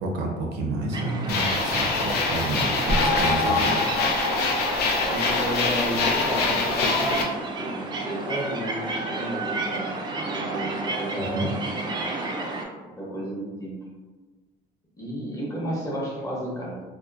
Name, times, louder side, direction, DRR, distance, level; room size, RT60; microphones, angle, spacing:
voice 1, 0.0-3.7 11.3-11.5, right 2 dB, 80° right, 0 dB, 0.6 m, -29 dB
sound 1, 0.9-12.6, right 2 dB, 25° right, 0.4 m, -32 dB
sound 2, 1.3-7.2, left 3 dB, 75° left, 0.5 m, -24 dB
voice 2, 2.4-3.8 5.0-10.0 10.3-12.0 12.8-13.9 15.0-16.8, equal, 20° left, -5 dB, 0.8 m, -33 dB
2.8 x 2.0 x 2.3 m, 1.3 s
cardioid pair, 110°, 17 cm